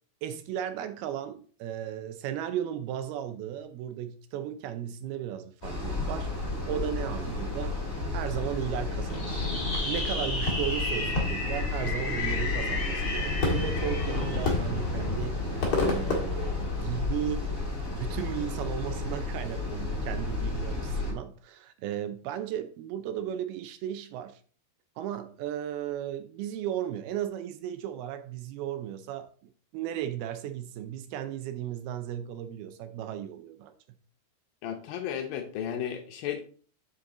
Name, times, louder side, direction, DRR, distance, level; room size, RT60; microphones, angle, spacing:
voice 1, 0.2-6.3 6.6-7.8 8.1-9.5 9.9-17.5 17.9-24.4 25.0-29.3 29.7-33.7, right 10 dB, 80° right, 9 dB, 2.5 m, -35 dB
sound 1, 5.6-21.1, left 3 dB, 20° left, 2.4 m, -32 dB
Fireworks, 9.1-17.2, left 3 dB, 45° left, 1.9 m, -31 dB
voice 2, 34.6-36.4, left 9 dB, 75° left, 5 dB, 2.3 m, -34 dB
7.5 x 6.8 x 3.8 m, 0.43 s
omnidirectional pair, 4.7 m